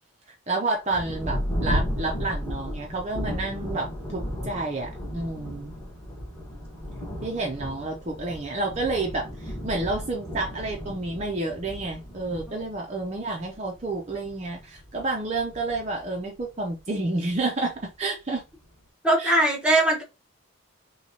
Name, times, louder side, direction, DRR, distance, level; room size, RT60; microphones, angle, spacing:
voice 1, 0.5-5.7 7.2-18.4 19.2-19.3, right 2 dB, 30° right, 0.6 m, -30 dB
Thunder, 0.9-16.9 17.7-17.8 18.4-18.8, equal, 10° left, 1.3 m, -34 dB
voice 2, 19.0-20.0, right 1 dB, 5° right, 1.1 m, -20 dB
6.0 x 2.3 x 2.8 m
head